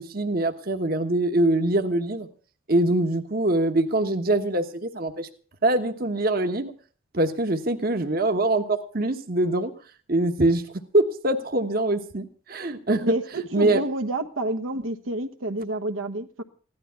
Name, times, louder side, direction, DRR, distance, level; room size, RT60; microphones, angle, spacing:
voice 1, 0.0-2.3 2.7-5.3 5.6-6.7 7.1-9.7 10.1-10.6 10.9-13.1 13.5-13.8, right 2 dB, 45° right, 6 dB, 1.2 m, -23 dB
voice 2, 13.0-16.4, right 1 dB, 80° right, 7 dB, 1.2 m, -29 dB
16.5 x 12.0 x 5.8 m, 0.40 s
head